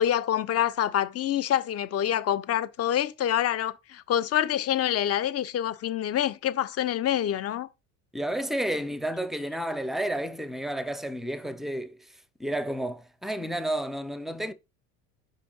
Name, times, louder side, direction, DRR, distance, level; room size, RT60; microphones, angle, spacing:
voice 1, 0.0-7.7, left 10 dB, 35° left, 0.8 m, -26 dB
voice 2, 8.1-12.0 12.4-14.5, right 1 dB, ahead, 0.6 m, -31 dB
5.1 x 4.7 x 5.5 m
supercardioid pair, 110°, 39 cm